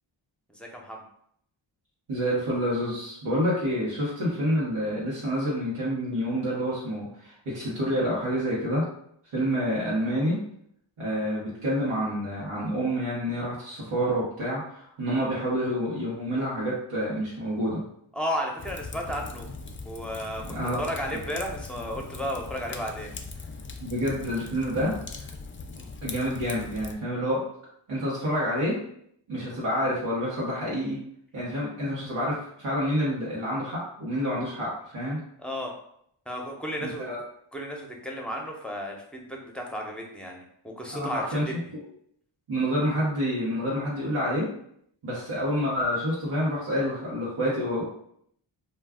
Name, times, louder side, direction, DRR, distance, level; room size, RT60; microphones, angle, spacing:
voice 1, 0.5-1.0 18.1-19.5 19.8-23.1 35.4-35.7 36.3-37.1 37.5-41.5, equal, ahead, 0 dB, 0.7 m, -33 dB
voice 2, 2.1-8.8 9.3-10.4 11.0-17.8 20.4-20.8 21.1-21.2 23.8-25.3 26.0-27.4 27.9-28.8 29.3-31.0 31.3-35.2 36.8-37.2 40.9-41.6 42.5-44.5 45.0-47.8, equal, 85° right, -7 dB, 1.0 m, -28 dB
Fire, 18.6-26.9, left 4 dB, 30° left, 0.3 m, -40 dB
2.4 x 2.3 x 3.5 m, 0.69 s
cardioid pair, 40°, 49 cm